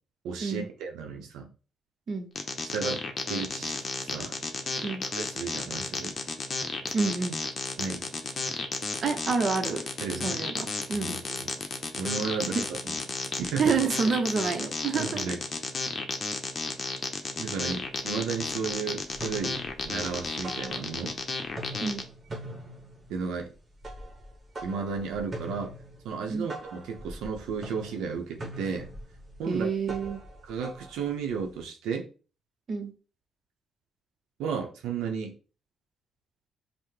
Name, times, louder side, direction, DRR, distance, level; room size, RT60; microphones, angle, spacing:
voice 1, 0.2-1.5 2.6-3.0 3.3-4.4 5.3-6.2 7.8-8.0 10.0-10.4 10.9-11.5 12.0-13.0 13.4-13.8 15.0-15.4 17.4-19.6 19.8-21.1 23.1-23.5 24.6-25.7 26.0-28.9 29.4-29.7 30.5-32.1 34.4-35.4, right 5 dB, 90° right, 0.6 m, -33 dB
sound 1, 2.4-22.0, left 3 dB, 40° left, 0.7 m, -33 dB
voice 2, 6.9-7.4 9.0-9.8 10.2-11.2 13.6-15.4 21.8-22.0 26.3-26.5 29.4-30.2 32.7-32.9, right 5 dB, 50° right, 0.7 m, -28 dB
sound 2, 19.1-21.2 21.5-31.6, right 1 dB, 35° right, 1.1 m, -43 dB
5.6 x 2.0 x 3.2 m
cardioid pair, 90°, 0 cm